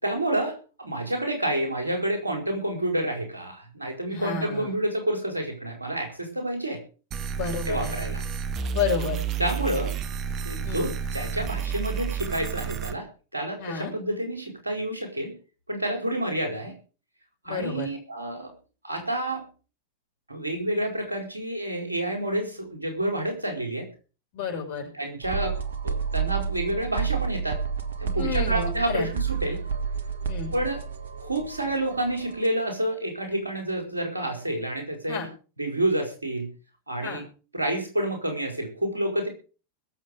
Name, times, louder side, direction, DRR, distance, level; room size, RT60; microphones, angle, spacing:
voice 1, 0.0-6.8 7.6-8.2 9.4-10.0 10.4-15.3 15.7-16.7 17.4-18.5 18.8-19.5 20.3-23.9 24.9-25.6 25.8-27.6 28.0-29.6 30.5-30.8 31.2-35.2 35.6-36.5 36.9-37.3 37.5-39.3, right 1 dB, 80° right, 3 dB, 4.7 m, -29 dB
voice 2, 4.1-4.7 7.3-7.9 8.7-9.2 10.6-10.9 13.6-13.9 17.5-17.9 24.3-24.9 28.1-29.1 30.3-30.5 35.1-35.3 37.0-37.2, left 5 dB, 50° left, 1 dB, 6.5 m, -30 dB
sound 1, 7.1-12.9, right 6 dB, 35° right, 1.4 m, -31 dB
sound 2, 25.2-32.5, right 6 dB, 65° right, 1.6 m, -30 dB
21.5 x 7.6 x 5.1 m, 0.36 s
figure-of-eight pair, 90°, 0 cm